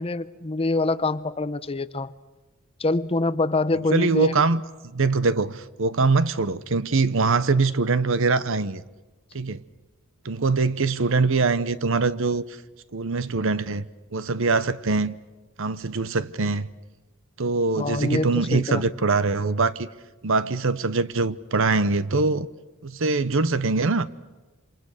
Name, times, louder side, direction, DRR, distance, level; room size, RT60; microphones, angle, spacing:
voice 1, 0.0-2.1 2.8-4.4 17.8-18.9, left 2 dB, 25° left, 0.7 m, -25 dB
voice 2, 3.9-4.6 4.9-8.8 9.3-9.6 10.2-12.4 12.9-13.8 14.1-15.2 15.6-16.7 17.4-19.9 20.2-22.5 22.8-24.1, right 3 dB, 65° right, 0.9 m, -23 dB
28.0 x 26.5 x 6.6 m
head